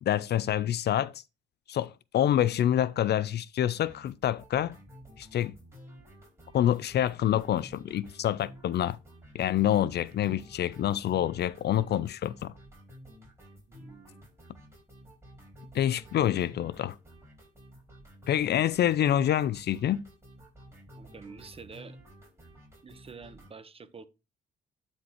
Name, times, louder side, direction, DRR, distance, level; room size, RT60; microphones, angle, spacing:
voice 1, 0.0-1.1 1.7-4.8 5.2-5.5 6.5-9.0 9.3-12.3 15.7-17.0 18.3-20.0, left 11 dB, 55° left, 0.4 m, -27 dB
sound 1, 3.8-23.5, equal, 15° right, 4.6 m, -52 dB
voice 2, 13.7-14.2 21.0-22.0 22.8-24.1, right 5 dB, 30° right, 0.9 m, -48 dB
12.0 x 4.4 x 2.9 m
cardioid pair, 90°, 20 cm